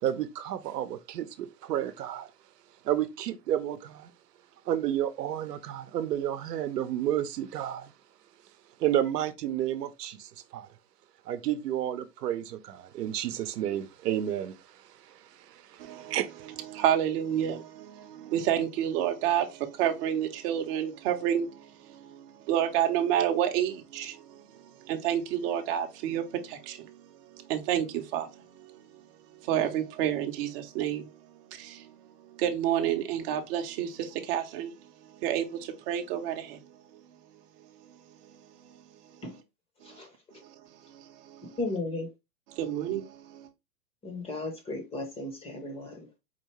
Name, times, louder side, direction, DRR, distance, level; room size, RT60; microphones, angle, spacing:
voice 1, 0.0-2.3 2.8-4.1 4.6-7.9 8.8-10.7 11.2-16.5, right 11 dB, 75° right, 0.8 m, -31 dB
voice 2, 15.8-16.1 16.7-21.6 22.1-22.2 22.5-24.2 24.9-26.9 27.5-28.3 29.5-31.1 31.6-31.8 32.4-34.7 35.2-36.6 42.6-43.0 43.3-43.4, right 10 dB, 35° right, 0.7 m, -29 dB
voice 3, 41.6-42.1 44.0-46.2, left 2 dB, 10° left, 0.7 m, -35 dB
4.4 x 2.7 x 3.0 m
hypercardioid pair, 130°, 48 cm